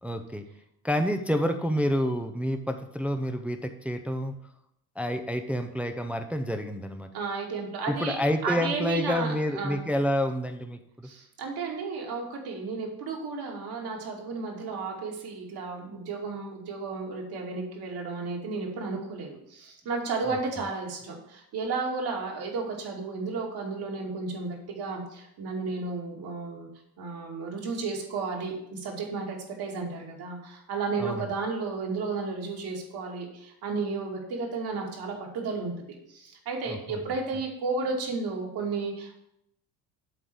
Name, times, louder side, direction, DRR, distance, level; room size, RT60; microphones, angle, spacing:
voice 1, 0.0-0.4 0.8-4.4 5.0-7.1 7.9-10.8 20.3-20.4 31.0-31.3 36.7-37.0, equal, 5° right, 7 dB, 0.5 m, -28 dB
voice 2, 7.1-9.8 11.0-26.7 27.0-35.7 36.1-39.2, right 4 dB, 60° right, -1 dB, 2.6 m, -33 dB
7.9 x 3.9 x 6.2 m, 0.78 s
supercardioid pair, 90°, 43 cm